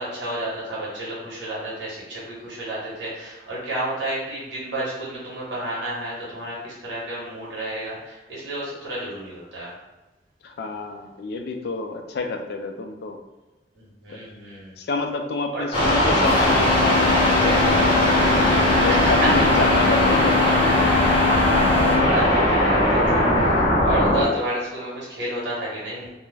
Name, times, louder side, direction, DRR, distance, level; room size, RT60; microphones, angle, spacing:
voice 1, 0.0-9.7 13.7-14.8 15.5-15.6 18.9-19.5 21.3-26.1, right 1 dB, 80° right, -7 dB, 1.0 m, -31 dB
voice 2, 10.4-13.2 14.1-14.2 14.8-18.3 18.8-20.7, left 3 dB, 65° left, 5 dB, 0.3 m, -29 dB
sound 1, 15.7-24.2, left 1 dB, 30° left, 0.8 m, -19 dB
sound 2, 16.3-22.3, left 9 dB, 10° right, 0.5 m, -26 dB
2.3 x 2.1 x 3.2 m, 1.1 s
head